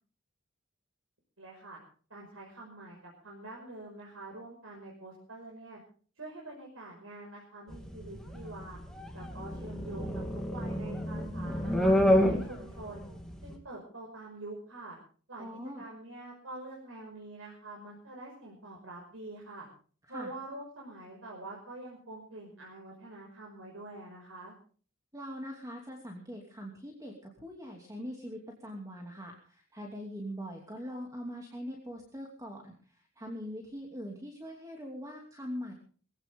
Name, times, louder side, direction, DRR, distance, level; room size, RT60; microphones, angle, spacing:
voice 1, 1.4-1.8 2.1-5.8 6.2-8.8 9.1-12.0 12.2-13.1 13.4-15.0 15.3-15.5 15.8-19.7 20.1-24.5, right 2 dB, 90° right, -1 dB, 5.8 m, -46 dB
sound 1, 7.7-13.6, equal, 5° left, 2.9 m, -29 dB
voice 2, 15.4-15.8 20.1-20.3 25.1-35.7, equal, 15° right, 0 dB, 2.7 m, -42 dB
22.0 x 16.5 x 3.7 m, 0.43 s
head